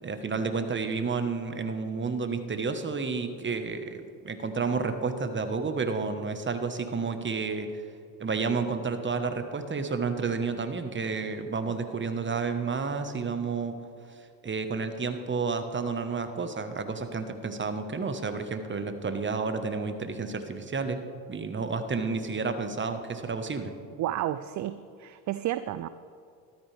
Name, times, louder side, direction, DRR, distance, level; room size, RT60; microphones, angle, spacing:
voice 1, 0.0-7.7 8.2-13.8 14.4-21.0 21.3-23.7, right 4 dB, 25° right, 8 dB, 1.2 m, -31 dB
voice 2, 24.0-25.9, right 13 dB, 40° right, 13 dB, 0.4 m, -31 dB
13.5 x 12.5 x 3.4 m, 2.4 s
hypercardioid pair, 70°, 49 cm